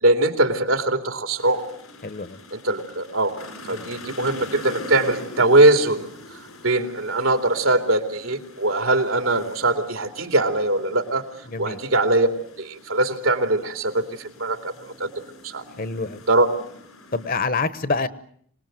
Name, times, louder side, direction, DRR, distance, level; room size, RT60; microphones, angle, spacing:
voice 1, 0.0-1.6 2.5-3.3 3.7-6.1 6.6-11.2 11.6-12.3 12.6-15.1 15.4-15.6 16.3-16.5, right 2 dB, 80° right, 7 dB, 2.9 m, -21 dB
sound 1, 1.4-17.4, left 2 dB, 90° left, 5.0 m, -43 dB
voice 2, 2.0-2.4 3.7-3.8 11.5-11.8 15.8-16.2 17.1-18.1, left 3 dB, 45° left, 15 dB, 1.1 m, -26 dB
26.0 x 19.5 x 9.3 m, 0.64 s
head